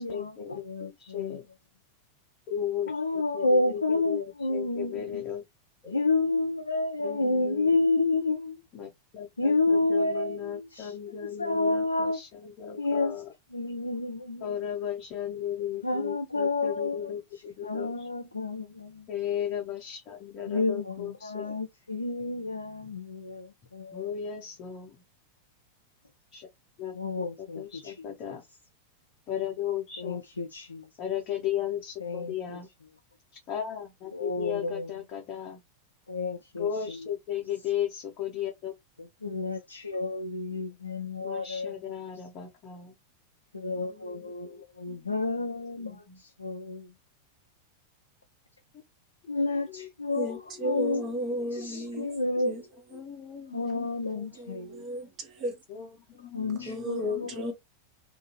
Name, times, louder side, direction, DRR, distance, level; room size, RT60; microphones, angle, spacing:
voice 1, 0.0-1.5 2.5-5.4 5.8-6.0 7.0-7.8 8.7-13.3 14.4-18.1 19.1-21.6 23.9-25.0 26.3-26.5 26.8-26.9 27.4-28.4 29.3-30.2 31.0-32.7 33.5-35.6 36.6-38.7 41.2-42.9 43.7-45.2 45.8-46.2 49.5-51.1 51.6-52.2 52.9-54.4 55.7-57.5, left 9 dB, 35° left, 0.8 m, -36 dB
voice 2, 0.7-1.4 2.9-5.0 5.9-8.6 9.4-10.9 11.4-12.2 12.8-13.1 13.5-14.4 15.8-17.0 17.6-18.9 20.5-21.0 21.2-23.5 23.7-24.0 27.0-27.9 30.0-30.8 32.0-32.3 34.1-34.9 36.1-36.6 39.2-41.7 43.5-46.0 46.4-46.8 49.3-50.3 50.6-51.0 51.6-52.5 53.5-54.8 56.3-57.3, left 3 dB, 80° left, 0.4 m, -29 dB
voice 3, 50.1-53.0 54.2-55.6 56.6-57.5, equal, 35° right, 1.1 m, -34 dB
2.7 x 2.4 x 2.9 m
figure-of-eight pair, 90°, 0 cm